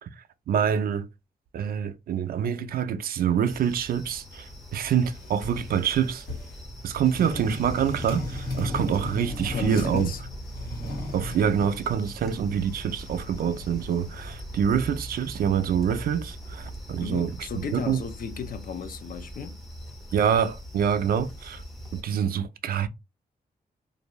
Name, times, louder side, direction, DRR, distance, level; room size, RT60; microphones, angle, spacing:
voice 1, 0.0-1.1 1.5-6.3 6.8-10.1 11.1-18.0 20.1-21.6 21.9-22.9, right 8 dB, 70° right, 0.4 m, -26 dB
sound 1, 3.5-22.0, equal, ahead, 0.5 m, -41 dB
sound 2, 5.1-6.7 7.1-10.2 10.5-14.3, left 1 dB, 80° left, 1.4 m, -37 dB
voice 2, 9.4-10.2 17.0-19.6, left 7 dB, 65° left, 0.5 m, -35 dB
2.6 x 2.2 x 3.0 m
wide cardioid pair, 130°, 16 cm